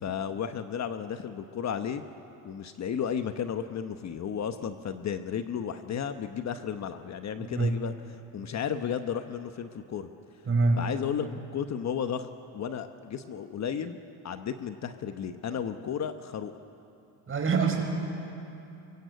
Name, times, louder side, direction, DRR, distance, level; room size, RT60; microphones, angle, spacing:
voice 1, 0.0-2.0 2.4-10.1 10.8-12.3 12.5-14.0 14.2-16.5, left 8 dB, 45° left, 8 dB, 1.0 m, -33 dB
voice 2, 7.4-7.7 10.5-10.8 17.3-17.8, right 4 dB, 35° right, 2 dB, 5.2 m, -25 dB
24.0 x 23.0 x 8.1 m, 2.8 s
cardioid pair, 110°, 39 cm